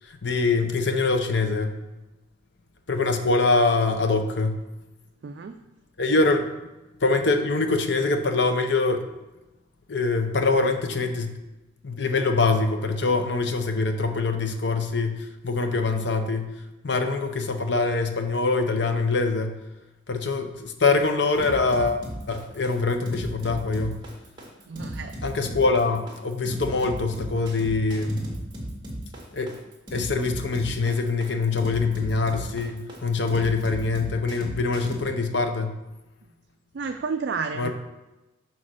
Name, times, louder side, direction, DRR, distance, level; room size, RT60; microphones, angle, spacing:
voice 1, 0.1-1.8 2.9-4.6 6.0-6.5 7.0-9.1 9.9-11.4 11.8-19.6 20.1-24.0 25.2-28.3 29.3-29.6 29.9-35.8 37.5-37.7, left 3 dB, 60° left, 6 dB, 0.7 m, -24 dB
voice 2, 5.2-5.6 24.7-25.1 36.7-37.7, right 5 dB, 60° right, 6 dB, 0.3 m, -31 dB
sound 1, 21.4-35.0, equal, 20° right, 1.7 m, -36 dB
6.4 x 4.1 x 6.1 m, 1.0 s
head